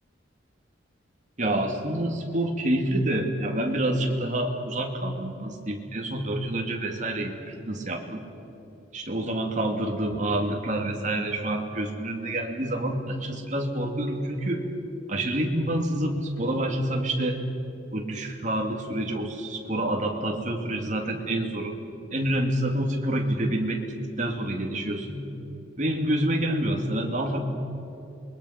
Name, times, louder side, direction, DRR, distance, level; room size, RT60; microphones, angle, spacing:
voice 1, 1.4-8.2 8.9-14.6 15.1-17.4 17.9-21.8 22.1-23.8 24.2-25.3 25.8-27.4, right 1 dB, 40° right, 2 dB, 2.4 m, -27 dB
28.0 x 21.5 x 5.8 m, 2.8 s
head